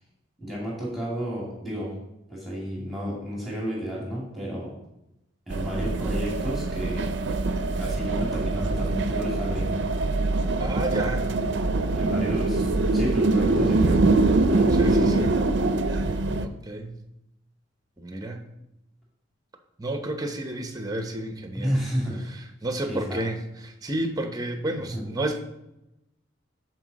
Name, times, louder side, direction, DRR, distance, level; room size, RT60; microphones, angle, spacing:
voice 1, 0.4-1.9 2.3-4.7 5.5-7.2 7.8-9.7 11.9-15.2 15.8-15.9 21.6-22.4 22.9-23.2 24.8-25.0, equal, ahead, -5 dB, 2.3 m, -32 dB
sound 1, 5.5-16.5, right 2 dB, 60° right, 0.5 m, -23 dB
voice 2, 10.6-11.3 14.7-15.3 16.4-17.0 18.0-18.4 19.8-21.7 22.6-23.4 23.6-25.4, right 1 dB, 20° right, 6 dB, 0.7 m, -31 dB
13.0 x 4.7 x 4.0 m, 0.88 s
head